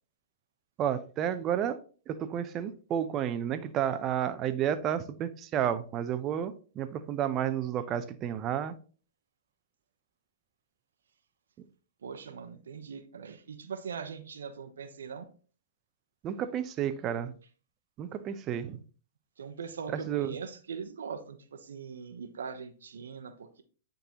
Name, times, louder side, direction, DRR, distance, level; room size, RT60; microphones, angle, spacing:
voice 1, 0.8-1.8 2.1-8.7 16.2-17.3 18.0-18.8 19.9-20.4, right 9 dB, 30° right, 0.6 m, -31 dB
voice 2, 12.0-15.3 19.4-23.6, right 6 dB, 90° right, 0.9 m, -41 dB
9.4 x 3.9 x 2.9 m
hypercardioid pair, 130°, 0 cm